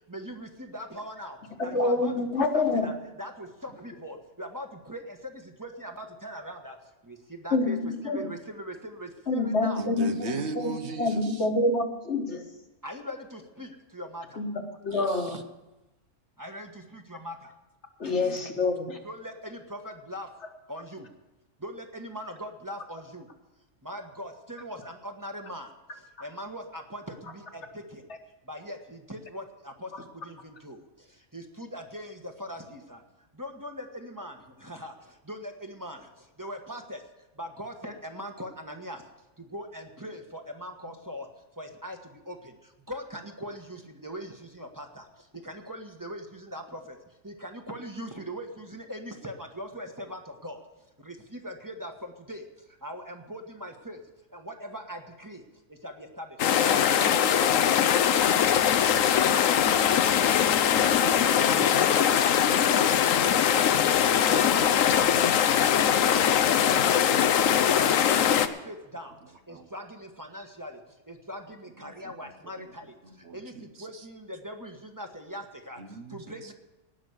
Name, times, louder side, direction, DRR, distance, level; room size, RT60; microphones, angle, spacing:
voice 1, 0.1-5.3 5.6-6.8 7.1-7.8 8.0-9.8 12.8-14.4 16.4-17.5 19.0-20.3 20.7-21.0 21.6-23.2 23.8-25.7 26.2-28.0 28.5-29.9 30.1-30.8 31.3-33.0 33.4-34.3 34.6-34.9 35.3-36.0 36.4-37.0 37.4-39.0 39.5-41.3 41.6-42.0 42.3-42.4 42.9-45.0 45.4-46.8 47.2-50.6 51.0-52.4 52.8-54.0 54.3-55.4 55.8-56.3 56.6-57.5 59.8-60.4 61.4-62.3 63.8-65.1 67.5-69.2 69.5-70.8 71.1-72.9 73.3-73.5 73.8-75.8 76.1-76.5, equal, 15° right, 3 dB, 1.3 m, -40 dB
voice 2, 1.6-2.9 7.5-8.3 9.3-12.4 14.4-14.5 14.8-15.4 18.0-19.0 29.9-30.0, left 2 dB, 60° left, 4 dB, 1.7 m, -27 dB
voice 3, 9.8-11.5 14.9-15.4 18.0-18.4 59.2-59.4 61.1-61.8 62.7-63.4 69.5-69.7 71.8-72.7 73.0-74.0 75.8-76.5, right 4 dB, 60° right, 7 dB, 1.2 m, -40 dB
sound 1, 56.4-68.5, left 9 dB, 85° left, 1.1 m, -22 dB
18.5 x 6.1 x 8.1 m, 1.0 s
omnidirectional pair, 1.3 m